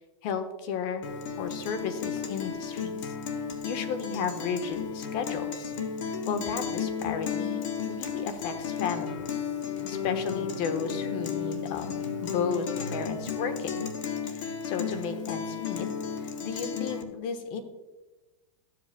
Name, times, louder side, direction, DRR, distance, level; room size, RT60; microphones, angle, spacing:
voice 1, 0.2-1.0 1.4-3.1 3.6-5.7 6.0-9.3 9.8-13.9 14.2-15.9 16.2-17.6, left 6 dB, 50° left, 8 dB, 1.2 m, -34 dB
Guitar, 1.0-17.0, left 7 dB, 70° left, 1.0 m, -33 dB
13.0 x 7.6 x 2.2 m, 1.1 s
hypercardioid pair, 125°, 17 cm